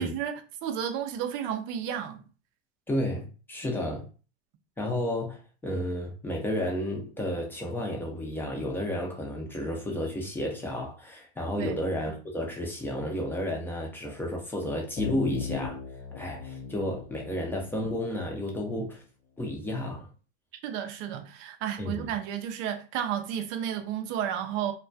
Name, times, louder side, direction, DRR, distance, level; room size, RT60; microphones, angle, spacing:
voice 1, 0.0-2.2 11.5-11.8 18.8-18.9 20.6-24.7, right 9 dB, 40° right, 0.4 m, -32 dB
voice 2, 2.9-4.1 4.8-15.8 16.2-19.0 19.4-20.1 21.8-22.1, left 1 dB, 5° left, 0.6 m, -32 dB
sound 1, 15.0-18.6, left 5 dB, 60° left, 0.7 m, -38 dB
2.2 x 2.2 x 2.5 m
hypercardioid pair, 115°, 32 cm